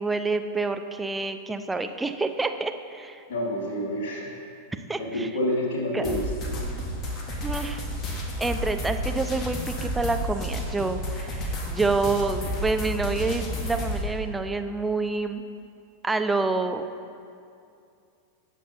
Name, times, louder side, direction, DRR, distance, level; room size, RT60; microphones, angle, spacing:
voice 1, 0.0-3.2 4.9-5.3 5.9-6.2 6.6-6.8 7.4-7.8 8.4-15.4 16.0-16.8, right 3 dB, 10° right, 7 dB, 0.5 m, -28 dB
voice 2, 3.3-4.3 5.0-6.2, left 1 dB, 55° left, -3 dB, 2.4 m, -28 dB
sound 1, 6.0-14.0, equal, 30° left, 1.3 m, -31 dB
16.5 x 7.3 x 2.8 m, 2.5 s
figure-of-eight pair, 90°, 0 cm